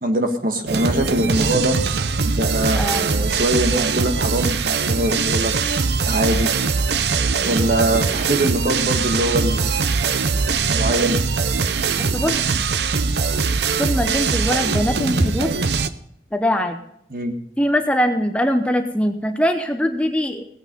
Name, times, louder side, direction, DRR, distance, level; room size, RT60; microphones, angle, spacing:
voice 1, 0.0-1.8 2.3-5.5 6.1-6.5 7.4-9.7 10.7-11.2 17.1-17.3, right 1 dB, 50° right, 6 dB, 1.6 m, -22 dB
sound 1, 0.7-15.9, right 5 dB, 75° right, 0.7 m, -21 dB
voice 2, 2.7-3.1 12.1-12.3 13.8-15.5 16.3-16.8 17.6-20.5, equal, 5° left, 6 dB, 0.8 m, -21 dB
17.5 x 8.9 x 5.3 m, 0.71 s
head